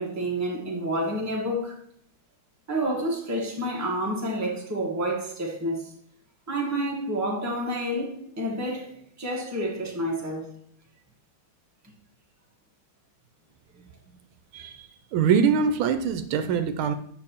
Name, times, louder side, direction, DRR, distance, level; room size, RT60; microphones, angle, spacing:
voice 1, 0.0-1.8 2.7-5.9 6.5-8.9 9.2-10.5, right 1 dB, 10° right, 1.1 m, -29 dB
voice 2, 14.5-16.9, right 6 dB, 80° right, 1.4 m, -24 dB
8.7 x 6.0 x 2.9 m
omnidirectional pair, 2.3 m